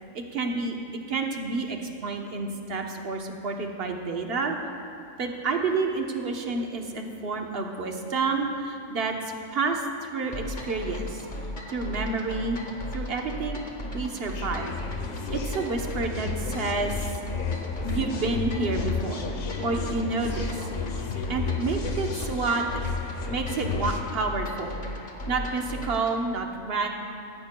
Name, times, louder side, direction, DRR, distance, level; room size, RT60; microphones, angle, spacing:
voice 1, 0.1-4.6 5.2-11.3 11.7-12.7 12.9-13.6 13.9-14.7 15.3-17.0 17.8-19.2 19.6-20.7 21.3-22.6 23.3-24.8 25.3-26.9, right 3 dB, 50° right, 2 dB, 1.1 m, -29 dB
sound 1, 10.3-26.2, left 1 dB, 35° left, 1.3 m, -36 dB
sound 2, 14.3-24.0, left 5 dB, 80° left, 1.3 m, -33 dB
17.0 x 14.5 x 2.3 m, 2.6 s
omnidirectional pair, 1.4 m